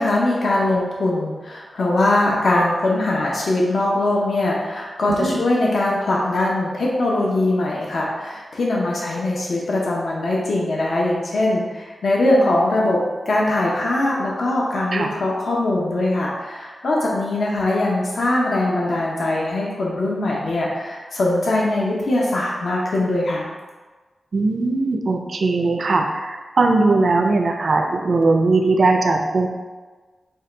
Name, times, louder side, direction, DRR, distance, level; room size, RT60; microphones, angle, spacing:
voice 1, 0.0-13.0 13.3-23.5, left 2 dB, 70° left, -3 dB, 0.7 m, -21 dB
voice 2, 24.3-29.5, right 3 dB, 55° right, 4 dB, 0.4 m, -19 dB
5.4 x 2.2 x 3.8 m, 1.3 s
wide cardioid pair, 95°, 0 cm